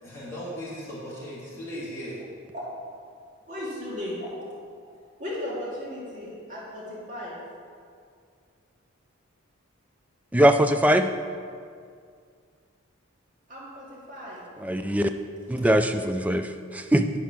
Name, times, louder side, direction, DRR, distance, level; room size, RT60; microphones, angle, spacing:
voice 1, 0.0-2.2, equal, 15° left, -10 dB, 2.5 m, -37 dB
voice 2, 3.5-4.6 5.2-7.4 13.5-14.4, left 1 dB, 40° right, -7 dB, 2.2 m, -36 dB
voice 3, 10.3-11.1 14.6-15.1 15.5-17.1, equal, 5° right, 7 dB, 0.3 m, -21 dB
10.5 x 4.6 x 6.1 m, 2.2 s
head